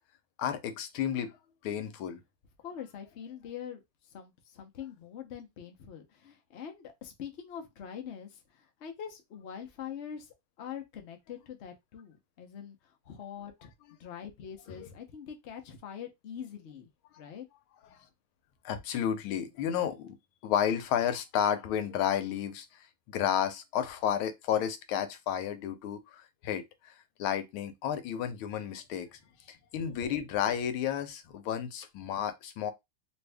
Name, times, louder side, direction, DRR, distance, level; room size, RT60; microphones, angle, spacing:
voice 1, 0.4-1.3 1.6-2.2 14.8-14.9 18.6-20.2 20.4-22.7 23.1-26.6 27.2-29.2 29.7-32.7, left 9 dB, 90° left, 1.5 m, -31 dB
voice 2, 2.6-13.7 14.0-16.9 17.2-17.4, left 8 dB, 70° left, 0.6 m, -44 dB
3.2 x 2.6 x 3.3 m
omnidirectional pair, 2.3 m